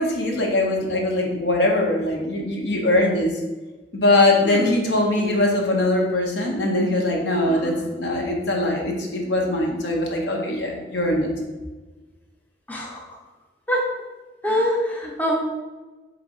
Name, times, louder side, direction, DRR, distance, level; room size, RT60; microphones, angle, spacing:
voice 1, 0.0-3.3 3.9-11.3, left 2 dB, 80° left, 0 dB, 0.8 m, -21 dB
voice 2, 7.4-7.9 12.7-13.2 13.7-13.9 14.4-15.4, equal, 10° left, -2 dB, 0.5 m, -25 dB
3.9 x 3.2 x 3.6 m, 1.2 s
head